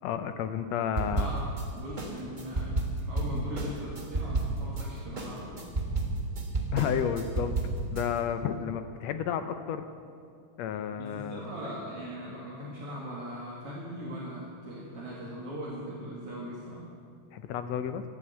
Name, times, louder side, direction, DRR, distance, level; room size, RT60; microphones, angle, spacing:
voice 1, 0.0-1.3 6.7-7.5 7.9-9.8 10.6-11.4 17.3-18.0, left 8 dB, 75° left, 9 dB, 1.7 m, -31 dB
sound 1, 1.0-1.6 2.0-4.8 5.2-8.0, right 2 dB, 25° right, 1.0 m, -31 dB
voice 2, 1.1-5.7 11.0-16.9, equal, 50° right, -6 dB, 2.8 m, -40 dB
14.0 x 10.5 x 8.1 m, 2.3 s
omnidirectional pair, 3.4 m